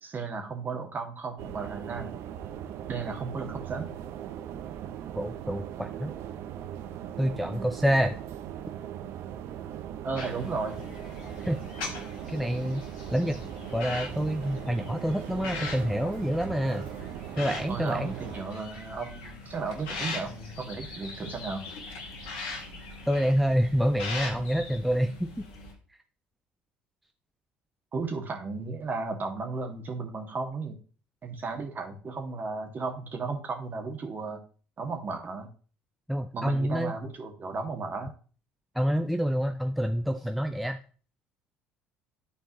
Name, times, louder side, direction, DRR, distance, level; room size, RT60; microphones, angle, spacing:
voice 1, 0.0-2.1 2.9-3.9 7.5-7.7 10.0-10.8 15.4-15.5 17.7-21.6 27.9-30.8 31.2-34.4 34.8-35.5 36.3-38.1, right 4 dB, 35° right, 3 dB, 1.9 m, -34 dB
sound 1, 1.4-18.4, right 10 dB, 60° right, 0.6 m, -39 dB
voice 2, 5.2-6.1 7.2-8.2 11.4-11.6 12.3-12.8 13.1-13.4 13.7-16.8 17.4-18.1 23.1-25.4 36.1-36.9 38.7-40.8, equal, ahead, 5 dB, 0.6 m, -27 dB
sound 2, 10.2-25.7, left 3 dB, 70° left, 1.6 m, -41 dB
11.5 x 4.4 x 3.0 m, 0.39 s
hypercardioid pair, 60°, 5 cm